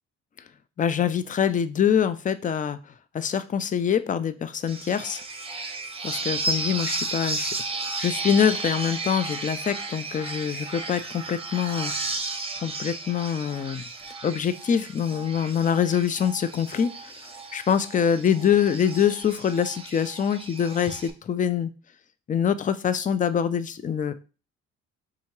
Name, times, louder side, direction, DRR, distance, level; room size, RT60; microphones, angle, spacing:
voice 1, 0.8-2.8 3.1-5.2 6.0-7.5 8.0-11.9 12.6-13.8 14.2-17.1 17.5-21.7 22.3-24.1, left 8 dB, 25° left, 13 dB, 0.4 m, -24 dB
sound 1, 4.7-21.1, right 3 dB, 20° right, 0.8 m, -34 dB
3.7 x 2.7 x 4.5 m, 0.34 s
cardioid pair, 90°, 30 cm